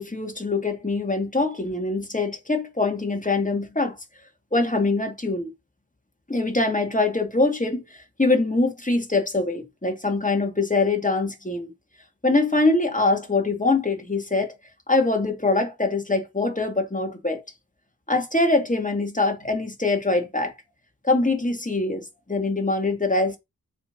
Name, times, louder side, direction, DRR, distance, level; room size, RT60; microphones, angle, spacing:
voice 1, 0.0-4.0 4.5-5.5 6.3-7.8 8.2-11.7 12.2-14.5 14.9-17.4 18.1-20.5 21.0-23.4, left 3 dB, 20° left, 2.6 m, -23 dB
6.8 x 5.8 x 5.4 m
wide cardioid pair, 70°, 34 cm